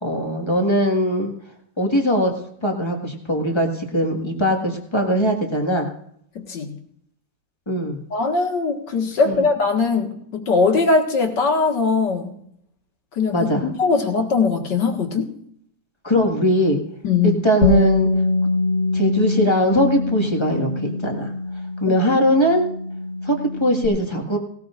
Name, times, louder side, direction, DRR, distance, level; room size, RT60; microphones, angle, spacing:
voice 1, 0.0-1.3 1.8-2.3 2.6-5.9 7.7-8.0 9.2-9.4 13.3-13.6 16.0-16.8 17.2-18.1 18.9-21.3 21.8-22.7 23.2-24.4, equal, 15° left, 1 dB, 1.7 m, -20 dB
voice 2, 6.4-6.7 8.1-12.4 13.2-15.3 17.0-17.4 21.9-22.0, left 4 dB, 65° left, 2 dB, 2.4 m, -20 dB
Bass guitar, 17.6-23.9, left 2 dB, 35° left, 2.2 m, -23 dB
18.5 x 18.0 x 2.5 m, 0.69 s
omnidirectional pair, 2.1 m